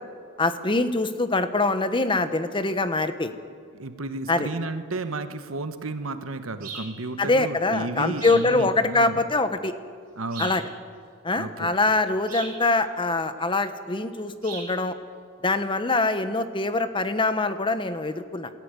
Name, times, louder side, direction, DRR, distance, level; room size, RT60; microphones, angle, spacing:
voice 1, 0.4-3.3 4.3-4.5 7.2-9.7 10.4-10.6 11.2-15.0 15.4-18.5, left 2 dB, 25° left, 11 dB, 1.0 m, -24 dB
voice 2, 3.7-9.2 10.2-10.5 11.3-11.7, right 2 dB, 90° right, 9 dB, 1.3 m, -33 dB
sound 1, 6.6-6.9 8.2-8.5 10.3-10.7 12.3-12.6 14.4-14.7, right 5 dB, 45° right, 5.2 m, -37 dB
20.5 x 13.5 x 9.6 m, 2.1 s
head